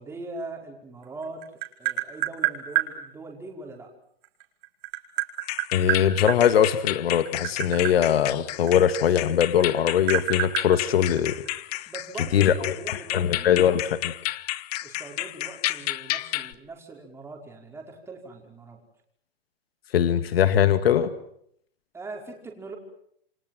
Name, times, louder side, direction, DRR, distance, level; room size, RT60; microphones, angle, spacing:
voice 1, 0.0-1.4 1.8-3.9 11.9-13.5 14.8-18.8 21.9-22.8, right 3 dB, 10° right, 1 dB, 5.3 m, -41 dB
Tap, 1.0-2.9 4.2-6.4 7.1-9.3 9.6-11.6, right 19 dB, 35° right, 4.7 m, -28 dB
sound 1, 5.4-16.5, left 17 dB, 40° left, 1.0 m, -32 dB
voice 2, 5.7-11.4 12.3-12.5 12.9-14.1 19.9-21.1, left 9 dB, 75° left, 11 dB, 2.0 m, -21 dB
29.5 x 25.0 x 7.6 m, 0.69 s
hypercardioid pair, 150°, 30 cm